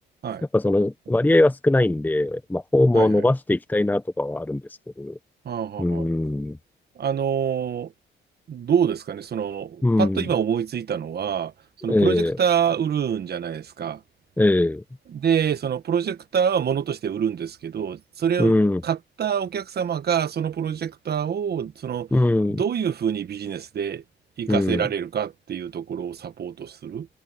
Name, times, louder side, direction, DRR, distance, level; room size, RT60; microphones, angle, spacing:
voice 1, 0.5-4.6 5.0-5.2 5.8-6.6 9.8-10.2 11.9-12.4 14.4-14.8 18.4-18.8 22.1-22.6 24.5-24.8, left 2 dB, 10° left, 0.9 m, -21 dB
voice 2, 2.9-3.3 5.4-6.1 7.0-7.9 8.5-11.5 11.8-14.0 15.1-18.5 18.8-22.1 22.5-24.0 24.4-27.1, right 8 dB, 55° right, 1.5 m, -26 dB
cardioid pair, 90°, 20 cm